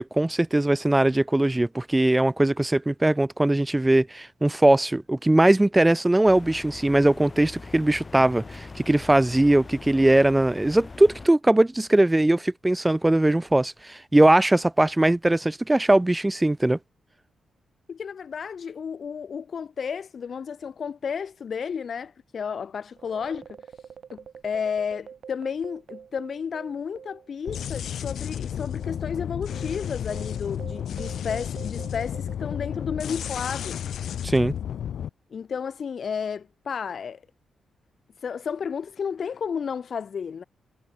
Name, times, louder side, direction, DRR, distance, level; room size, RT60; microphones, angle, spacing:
voice 1, 0.0-16.8 34.2-34.5, right 1 dB, 10° right, 0.4 m, -20 dB
sound 1, 6.3-11.3, left 3 dB, 25° left, 0.8 m, -42 dB
voice 2, 17.9-23.5 24.1-33.8 35.3-37.2 38.2-40.4, left 6 dB, 50° left, 2.2 m, -32 dB
sound 2, 22.9-27.8 28.0-28.2 28.8-33.5, right 7 dB, 55° right, 4.9 m, -45 dB
sound 3, 27.5-35.1, left 9 dB, 70° left, 0.5 m, -32 dB
wide cardioid pair, 145°, 0 cm